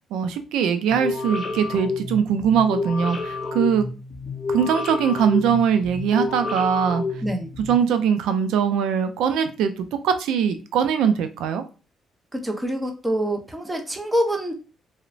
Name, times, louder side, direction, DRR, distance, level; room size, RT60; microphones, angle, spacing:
voice 1, 0.1-3.9 4.5-7.0 7.7-9.7 10.0-11.6, right 7 dB, 90° right, 9 dB, 0.3 m, -21 dB
sound 1, 0.9-7.8, left 3 dB, 45° left, 0.5 m, -30 dB
voice 2, 12.3-14.5, equal, 10° right, 3 dB, 0.6 m, -25 dB
2.9 x 2.0 x 2.5 m, 0.32 s
cardioid pair, 90°, 0 cm